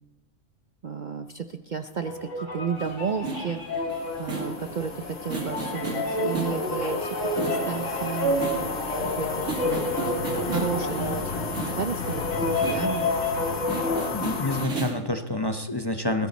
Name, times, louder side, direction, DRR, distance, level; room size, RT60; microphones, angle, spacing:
voice 1, 0.8-3.9 4.2-8.4 9.1-9.9 10.5-13.1, right 6 dB, 50° right, 8 dB, 0.6 m, -32 dB
sound 1, 2.0-14.1, left 1 dB, 75° left, 5.6 m, -30 dB
sound 2, 2.8-15.0, right 3 dB, 70° right, 2.8 m, -36 dB
sound 3, 3.9-14.7, left 4 dB, 60° left, 1.4 m, -34 dB
voice 2, 14.1-16.3, left 2 dB, 20° left, 6 dB, 0.8 m, -28 dB
20.0 x 16.0 x 4.1 m, 1.1 s
omnidirectional pair, 1.3 m